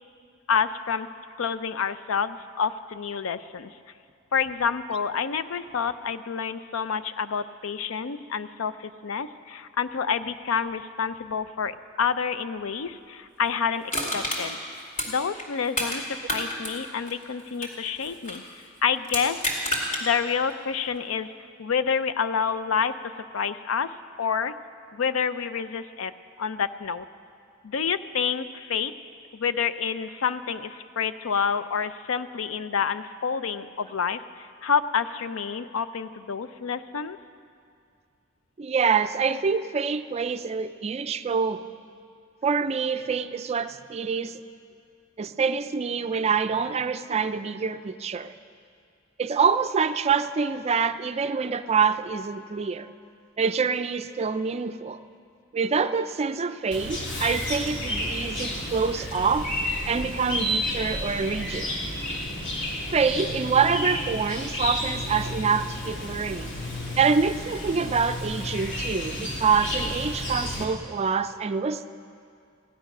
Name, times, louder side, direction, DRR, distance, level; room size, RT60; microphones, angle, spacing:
voice 1, 0.5-1.1 1.4-3.7 4.3-14.6 15.1-16.0 16.3-18.4 18.8-19.5 20.0-21.3 21.6-23.0 23.3-24.5 24.9-26.1 26.4-27.0 27.6-28.9 29.3-37.2, left 6 dB, 80° left, 13 dB, 0.5 m, -28 dB
Crushing, 13.9-16.0 16.3-18.5 19.0-20.0 20.5-20.6, equal, 40° left, 2.6 m, -29 dB
voice 2, 38.6-41.6 42.4-44.4 45.2-48.3 49.2-52.9 53.4-55.0 55.5-59.5 59.9-61.7 62.9-66.5 67.0-71.9, right 5 dB, 30° right, 11 dB, 0.4 m, -26 dB
Chirp tweet, 56.7-70.6, left 1 dB, 65° left, 2.3 m, -31 dB
15.5 x 10.5 x 6.0 m, 2.3 s
head